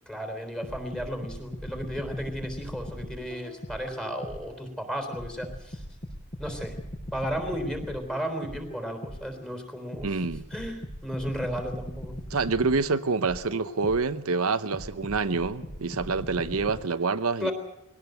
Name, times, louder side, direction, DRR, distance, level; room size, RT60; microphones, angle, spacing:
voice 1, 0.1-5.8 6.4-6.8 7.1-10.2 10.5-12.2 17.4-17.5, equal, 5° left, 3.7 m, -34 dB
sound 1, 0.6-4.6 5.1-9.4 9.9-14.2 14.7-16.8, equal, 40° left, 6.1 m, -39 dB
voice 2, 10.0-10.5 12.3-17.5, right 4 dB, 75° right, 0.9 m, -27 dB
22.0 x 17.5 x 7.9 m
head